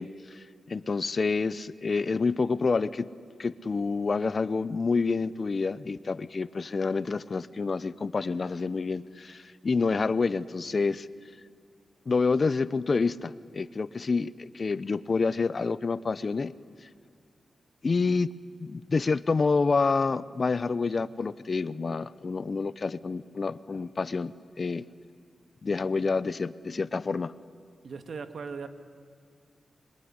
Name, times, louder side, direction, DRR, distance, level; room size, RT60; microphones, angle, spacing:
voice 1, 0.0-3.1 3.4-11.1 12.1-16.5 16.8-16.9 17.8-18.3 18.6-24.9 25.6-27.3, left 4 dB, 50° left, 17 dB, 0.8 m, -28 dB
voice 2, 27.8-28.7, right 5 dB, 70° right, 9 dB, 1.8 m, -38 dB
25.5 x 23.5 x 9.8 m, 2.1 s
cardioid pair, 70°, 0 cm